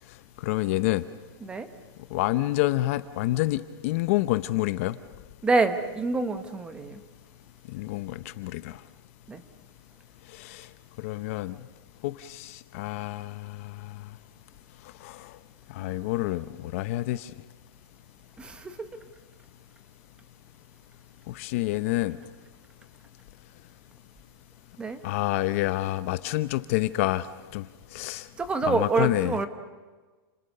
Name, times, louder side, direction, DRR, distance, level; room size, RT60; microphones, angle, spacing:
voice 1, 0.4-1.0 2.1-5.0 7.7-8.8 10.3-10.7 11.0-11.6 12.0-14.0 15.0-15.3 15.7-17.3 21.3-22.2 25.0-27.3 27.5-27.7 27.9-28.3 28.7-29.4, left 17 dB, 35° left, 13 dB, 0.8 m, -28 dB
voice 2, 5.4-7.0 9.3-9.4 18.4-18.8 24.8-25.0 28.4-29.5, right 3 dB, 10° right, 9 dB, 1.3 m, -26 dB
30.0 x 27.5 x 6.7 m, 1.3 s
supercardioid pair, 180°, 13 cm